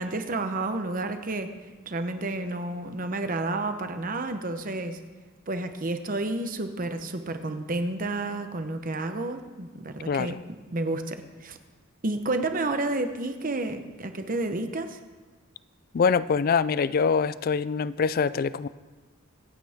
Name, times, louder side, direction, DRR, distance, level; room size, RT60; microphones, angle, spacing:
voice 1, 0.0-1.5 1.9-5.0 5.5-10.4 10.7-11.6 12.0-15.0, right 2 dB, 45° right, 8 dB, 1.0 m, -30 dB
voice 2, 10.1-10.4 15.9-18.7, left 5 dB, 45° left, 17 dB, 0.4 m, -24 dB
24.5 x 9.0 x 3.6 m, 1.4 s
head